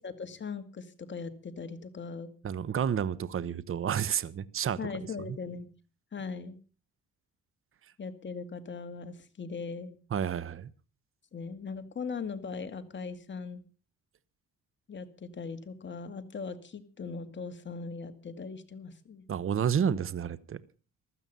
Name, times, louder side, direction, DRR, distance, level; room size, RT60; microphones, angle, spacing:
voice 1, 0.0-2.3 4.8-5.7 6.1-6.6 8.0-10.0 11.3-13.6 14.9-19.2, left 5 dB, 40° left, 9 dB, 2.1 m, -39 dB
voice 2, 2.4-4.8 10.1-10.7 19.3-20.6, right 8 dB, 45° right, 18 dB, 1.0 m, -30 dB
15.5 x 13.0 x 5.4 m, 0.36 s
cardioid pair, 90°, 30 cm